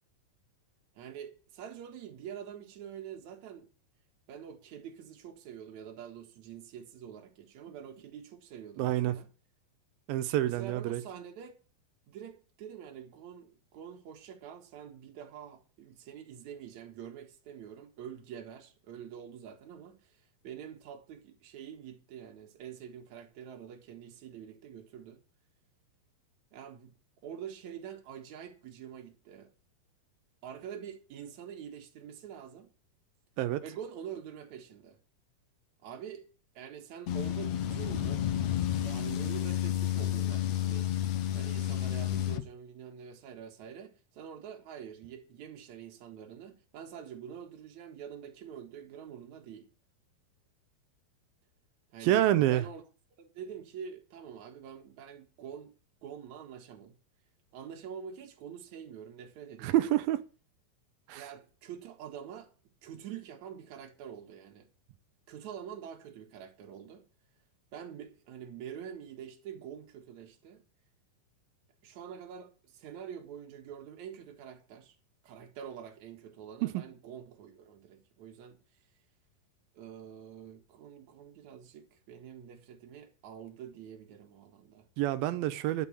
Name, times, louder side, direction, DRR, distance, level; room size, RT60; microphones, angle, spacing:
voice 1, 0.9-3.7 4.3-9.3 10.4-11.6 12.1-20.2 20.4-25.2 26.5-26.9 27.2-29.5 30.4-32.7 33.6-35.0 35.8-36.3 36.5-40.9 41.3-49.7 51.9-52.8 53.2-55.7 56.0-56.9 57.5-59.8 61.1-62.5 62.8-64.7 65.3-67.0 67.7-70.6 71.8-75.0 75.2-78.6 79.7-84.8, right 8 dB, 55° right, 2.7 m, -46 dB
voice 2, 8.8-9.2 10.1-11.0 33.4-33.6 52.0-52.6 59.6-60.2 61.1-61.3 76.6-76.8 85.0-85.9, right 13 dB, 80° right, 2.5 m, -27 dB
sound 1, 37.1-42.4, left 11 dB, 70° left, 1.7 m, -31 dB
11.0 x 6.2 x 8.4 m
omnidirectional pair, 4.2 m